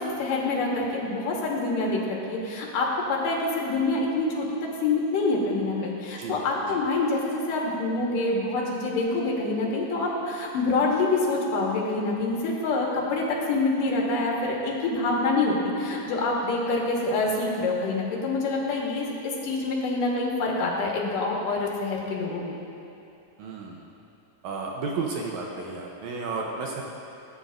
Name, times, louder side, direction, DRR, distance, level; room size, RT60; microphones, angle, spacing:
voice 1, 0.0-22.6, left 3 dB, 75° left, -2 dB, 2.9 m, -26 dB
voice 2, 23.4-23.8 24.4-26.8, right 4 dB, 70° right, -1 dB, 1.9 m, -32 dB
19.0 x 9.4 x 2.5 m, 2.8 s
omnidirectional pair, 3.9 m